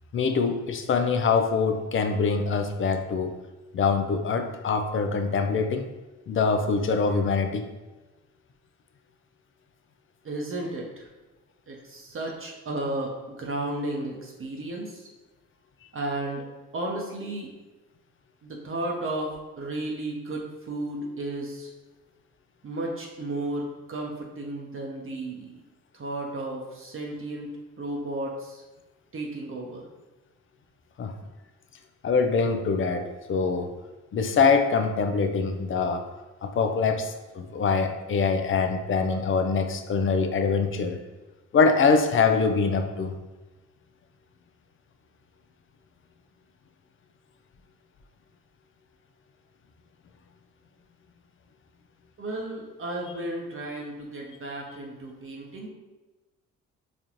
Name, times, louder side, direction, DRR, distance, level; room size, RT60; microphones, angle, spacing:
voice 1, 0.1-3.4 3.7-5.9 6.3-7.7 31.0-31.1 32.0-33.7 34.1-36.0 36.4-41.0 41.5-43.1, left 5 dB, 40° left, 7 dB, 0.5 m, -24 dB
voice 2, 10.2-11.1 11.7-15.1 15.9-16.4 16.7-17.5 18.4-21.7 22.6-25.5 25.9-27.5 27.8-28.6 29.1-29.8 52.2-55.7, right 1 dB, 40° right, -1 dB, 0.8 m, -33 dB
4.1 x 2.5 x 3.0 m, 1.1 s
supercardioid pair, 55°, 33 cm